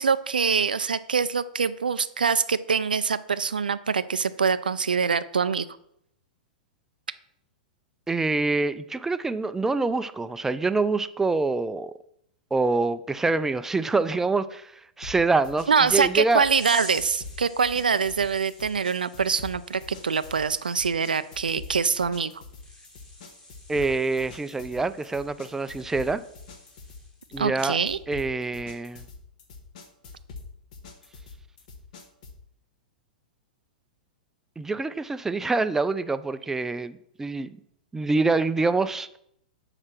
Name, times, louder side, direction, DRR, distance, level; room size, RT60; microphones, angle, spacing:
voice 1, 0.0-5.7 15.7-22.4 27.4-28.0, right 5 dB, 85° right, 15 dB, 0.4 m, -24 dB
voice 2, 8.1-11.9 12.5-16.4 23.7-26.2 27.3-27.8 28.1-29.0 34.6-37.6 37.9-39.2, right 3 dB, 10° right, 13 dB, 0.4 m, -26 dB
sound 1, 15.0-32.5, left 4 dB, 60° left, 1.2 m, -45 dB
mp sand, 16.6-27.3 27.6-28.0, left 1 dB, 15° left, 1.7 m, -47 dB
6.4 x 4.8 x 5.9 m, 0.74 s
figure-of-eight pair, 105°, 5 cm